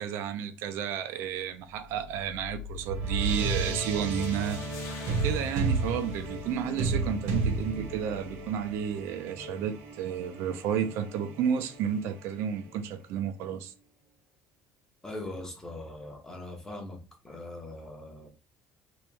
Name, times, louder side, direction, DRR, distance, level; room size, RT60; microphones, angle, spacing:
voice 1, 0.0-4.6 5.2-13.7, right 8 dB, 65° right, 0.5 m, -32 dB
sound 1, 2.0-12.7, right 3 dB, 85° right, 1.3 m, -33 dB
sound 2, 3.9-6.9, left 5 dB, 70° left, 0.9 m, -49 dB
voice 2, 15.0-17.0 17.2-18.3, left 1 dB, 10° left, 0.8 m, -41 dB
3.0 x 3.0 x 3.3 m
cardioid pair, 160°, 5 cm